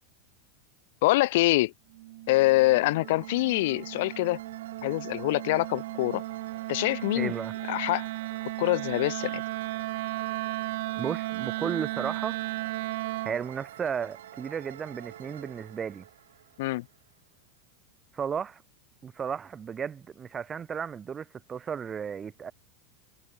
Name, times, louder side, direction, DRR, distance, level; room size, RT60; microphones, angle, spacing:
voice 1, 1.0-1.7 2.3-4.4 4.8-6.2 6.7-7.3 7.7-8.1 8.6-9.4 16.6-16.9, left 19 dB, 70° left, 0.4 m, -25 dB
Wind instrument woodwind instrument, 1.9-13.4, right 19 dB, 70° right, 0.3 m, -35 dB
sound 1, 2.4-17.2, right 11 dB, 90° right, 6.0 m, -48 dB
voice 2, 7.1-7.5 11.0-12.4 13.2-16.1 18.1-18.6 19.0-22.5, right 7 dB, 25° right, 0.8 m, -34 dB
supercardioid pair, 125°, 0 cm